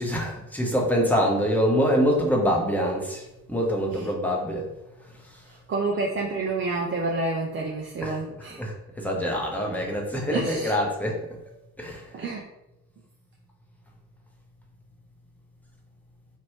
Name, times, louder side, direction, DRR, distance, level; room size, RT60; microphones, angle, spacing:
voice 1, 0.0-3.2 3.5-4.7 8.0-11.1 11.8-12.0, equal, 5° left, -1 dB, 1.0 m, -25 dB
voice 2, 5.7-8.6 10.3-10.7 12.1-12.4, right 3 dB, 25° right, -1 dB, 0.5 m, -28 dB
3.1 x 2.6 x 3.1 m, 0.89 s
figure-of-eight pair, 45°, 46 cm